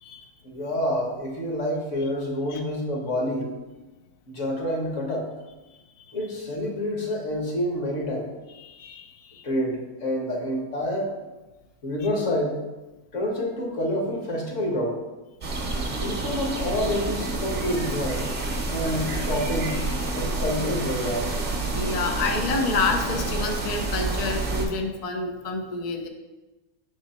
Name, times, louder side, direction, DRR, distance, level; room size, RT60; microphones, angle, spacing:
voice 1, 0.4-3.5 4.3-5.3 6.1-8.3 9.4-11.1 11.8-12.6 13.1-15.0 16.0-18.3 18.7-19.7 20.1-21.4, left 1 dB, 60° left, 0 dB, 1.4 m, -28 dB
voice 2, 8.6-9.5 18.6-18.7 19.4-19.5 19.9-20.2 21.7-26.1, left 3 dB, 75° left, 4 dB, 0.3 m, -29 dB
sound 1, 15.4-24.7, right 2 dB, 40° right, 0.7 m, -28 dB
6.0 x 3.9 x 4.1 m, 1.1 s
omnidirectional pair, 1.6 m